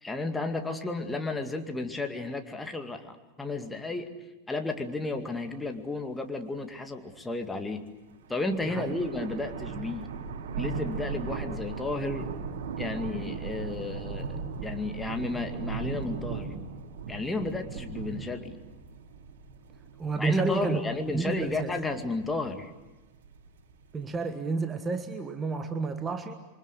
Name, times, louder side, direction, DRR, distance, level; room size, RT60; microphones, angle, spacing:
voice 1, 0.0-4.1 4.5-7.9 8.3-10.1 10.6-12.3 12.8-16.5 17.1-18.5 20.1-22.7, left 2 dB, 10° left, 5 dB, 2.2 m, -33 dB
sound 1, 8.1-24.0, right 5 dB, 60° right, 6.5 m, -38 dB
voice 2, 8.6-9.3 20.0-20.8 21.1-21.7 23.9-26.3, right 4 dB, 15° right, 8 dB, 1.5 m, -30 dB
28.0 x 24.5 x 8.2 m, 1.1 s
figure-of-eight pair, 90°, 0 cm